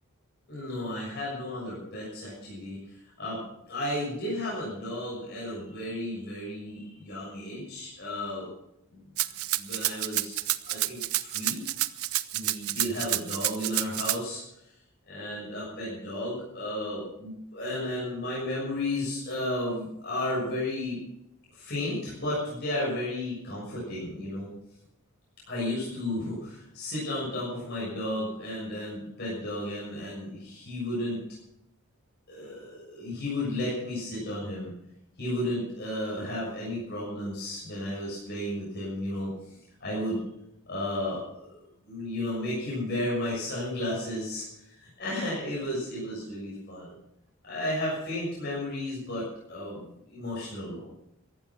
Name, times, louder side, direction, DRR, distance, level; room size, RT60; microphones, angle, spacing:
voice 1, 0.5-3.4 3.7-8.5 8.9-9.0 9.6-10.4 10.6-11.6 12.3-14.4 15.1-21.0 21.5-24.5 25.5-31.2 32.3-34.7 35.2-39.5 39.8-40.2 40.7-41.6 41.8-44.4 45.0-46.9 47.4-50.8, left 1 dB, 50° left, -6 dB, 6.7 m, -33 dB
Rattle (instrument), 9.2-14.2, right 16 dB, 85° right, 0.7 m, -29 dB
15.0 x 13.0 x 6.1 m, 0.80 s
head